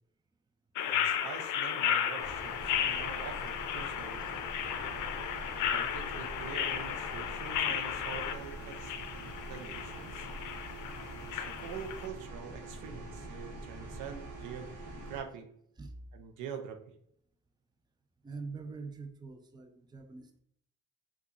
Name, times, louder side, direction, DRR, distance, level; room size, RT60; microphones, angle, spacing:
sound 1, 0.8-12.1, left 9 dB, 80° left, 0.5 m, -34 dB
voice 1, 0.9-4.2 5.7-8.9 9.5-10.3 11.2-14.7 15.0-15.5 16.1-16.8, right 7 dB, 85° right, 5 dB, 0.6 m, -45 dB
sound 2, 2.2-15.2, right 2 dB, 70° right, 1.0 m, -45 dB
voice 2, 18.2-20.4, right 4 dB, 15° right, 7 dB, 0.4 m, -44 dB
3.9 x 2.3 x 2.8 m, 0.69 s
cardioid pair, 90°, 30 cm